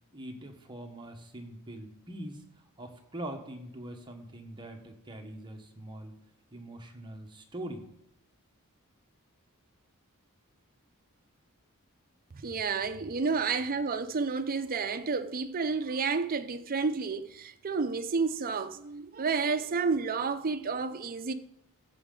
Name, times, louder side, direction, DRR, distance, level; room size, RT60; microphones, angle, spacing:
voice 1, 0.1-2.4 2.8-6.1 6.5-7.9 13.5-13.6, right 1 dB, 20° right, 1.2 m, -43 dB
voice 2, 12.3-21.3, right 4 dB, 40° right, 0.6 m, -30 dB
14.0 x 7.3 x 3.8 m
head